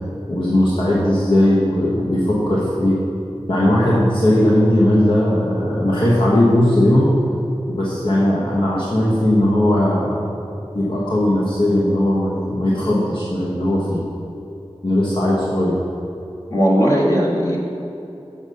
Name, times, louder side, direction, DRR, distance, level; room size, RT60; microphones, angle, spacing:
voice 1, 0.3-3.0 3.5-7.1 7.7-10.2 10.7-14.0 14.8-15.8, left 1 dB, 55° left, -7 dB, 1.3 m, -18 dB
voice 2, 16.5-17.6, equal, 30° left, -4 dB, 1.2 m, -17 dB
7.2 x 5.5 x 6.4 m, 2.9 s
wide cardioid pair, 60°, 11 cm